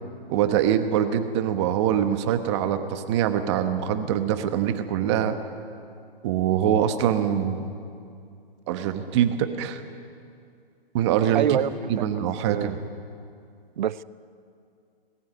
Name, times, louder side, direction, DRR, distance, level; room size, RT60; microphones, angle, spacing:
voice 1, 0.3-5.4 6.2-7.7 8.7-9.8 10.9-11.6 11.9-12.8, right 9 dB, 30° right, 9 dB, 1.2 m, -24 dB
voice 2, 11.3-12.1 12.4-12.7 13.8-14.0, right 10 dB, 50° right, 19 dB, 0.6 m, -26 dB
20.0 x 14.5 x 9.8 m, 2.4 s
hypercardioid pair, 150°, 30 cm